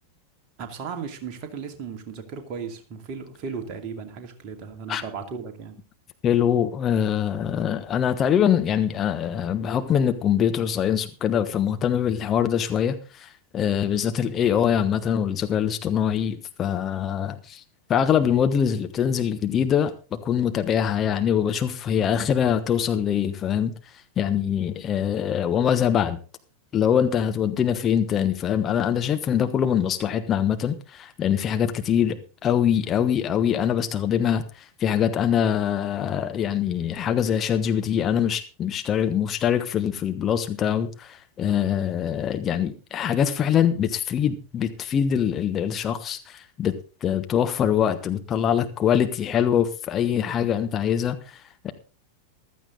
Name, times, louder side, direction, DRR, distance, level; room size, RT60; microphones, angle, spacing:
voice 1, 0.6-5.8, right 6 dB, 35° right, 2.6 m, -36 dB
voice 2, 6.2-17.6 17.9-23.7 24.2-26.2 26.7-46.7 47.0-51.4 51.6-51.7, left 9 dB, 25° left, 1.2 m, -23 dB
15.5 x 12.5 x 3.9 m
figure-of-eight pair, 90°, 0 cm